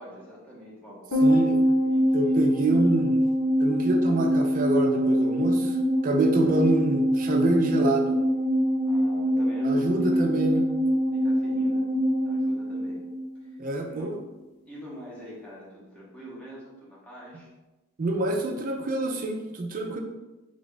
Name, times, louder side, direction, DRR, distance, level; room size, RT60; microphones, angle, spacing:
voice 1, 0.0-2.5 8.8-10.2 11.1-11.8 12.2-13.0 13.4-14.2 14.6-17.5, equal, 5° left, -7 dB, 1.0 m, -45 dB
sound 1, 1.1-13.6 13.9-14.0, equal, 85° left, 1.0 m, -24 dB
voice 2, 1.2-1.6 2.1-3.2 3.6-5.8 6.0-8.2 9.6-10.7 13.6-14.2 18.0-20.0, right 2 dB, 40° right, 2 dB, 0.5 m, -26 dB
3.3 x 2.5 x 3.8 m, 1.1 s
head